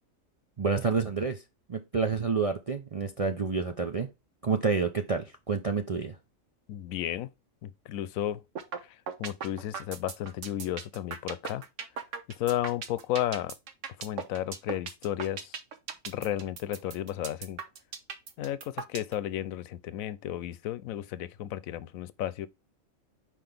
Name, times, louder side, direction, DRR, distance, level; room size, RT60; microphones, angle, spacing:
voice 1, 0.6-1.4 1.7-4.1 4.4-6.2, right 5 dB, 50° right, 0.4 m, -28 dB
voice 2, 6.7-7.3 7.6-8.4 9.2-11.6 12.4-13.6 14.0-15.5 16.1-17.6 18.4-22.5, left 12 dB, 90° left, 1.0 m, -33 dB
sound 1, 8.6-8.8 9.1-19.1, right 6 dB, 65° right, 1.3 m, -37 dB
5.8 x 5.0 x 3.4 m
omnidirectional pair, 1.4 m